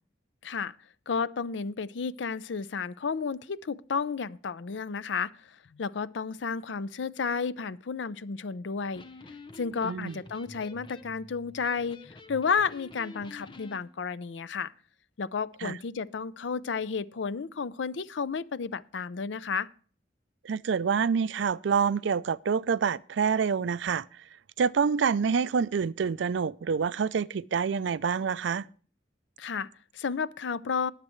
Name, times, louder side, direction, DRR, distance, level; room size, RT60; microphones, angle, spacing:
voice 1, 0.4-0.7 1.1-5.3 5.7-9.0 9.6-14.7 15.2-19.7 29.4-30.9, left 5 dB, 75° left, 0.5 m, -32 dB
Electric guitar, 8.8-13.8, left 2 dB, 25° left, 0.8 m, -48 dB
voice 2, 9.8-10.2 15.6-15.7 20.4-24.0 24.6-28.6, right 6 dB, 75° right, 0.4 m, -27 dB
20.5 x 7.5 x 3.1 m
head